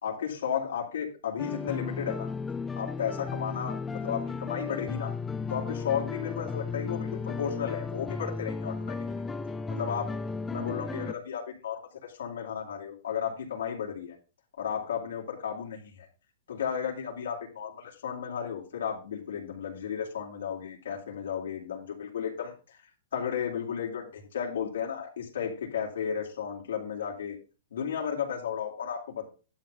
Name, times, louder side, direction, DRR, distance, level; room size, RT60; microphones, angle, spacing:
voice 1, 0.0-2.3 2.7-5.1 5.5-9.0 9.7-10.1 10.5-14.2 14.6-16.1 16.5-22.8 23.1-27.4 27.7-29.2, left 8 dB, 85° left, -2 dB, 3.4 m, -34 dB
sound 1, 1.4-11.1, left 4 dB, 10° left, 0.4 m, -35 dB
11.5 x 3.9 x 7.2 m, 0.34 s
hypercardioid pair, 175°, 0 cm